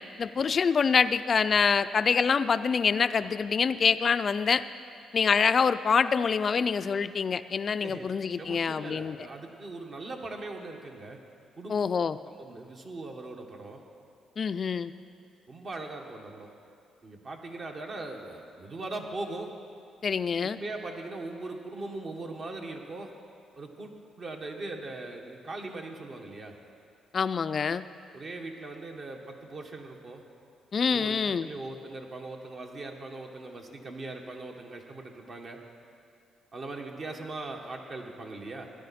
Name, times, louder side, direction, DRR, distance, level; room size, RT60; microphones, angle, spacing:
voice 1, 0.2-4.6 5.1-9.2 11.7-12.2 14.4-14.9 20.0-20.6 27.1-27.8 30.7-31.5, left 6 dB, 45° left, 13 dB, 0.4 m, -25 dB
voice 2, 7.8-11.2 11.6-11.8 12.3-13.8 15.5-16.5 17.0-19.5 20.5-23.1 23.6-23.9 24.2-26.5 28.1-30.2 30.9-35.6 36.5-38.7, right 2 dB, 50° right, 2 dB, 1.4 m, -40 dB
17.0 x 10.5 x 4.3 m, 2.4 s
cardioid pair, 90°, 0 cm